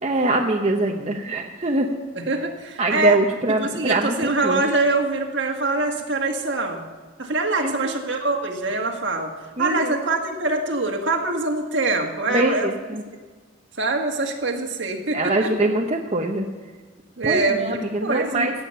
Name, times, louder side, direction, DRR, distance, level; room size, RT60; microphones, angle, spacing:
voice 1, 0.0-1.9 2.8-4.6 7.6-8.0 9.6-10.0 12.3-13.0 15.1-16.5 17.2-18.5, right 2 dB, 30° right, 1 dB, 0.9 m, -23 dB
voice 2, 2.3-3.2 3.6-6.8 7.2-9.3 9.6-12.7 13.8-15.5 17.2-18.5, right 2 dB, 65° right, 1 dB, 1.9 m, -24 dB
16.5 x 8.5 x 5.7 m, 1.4 s
head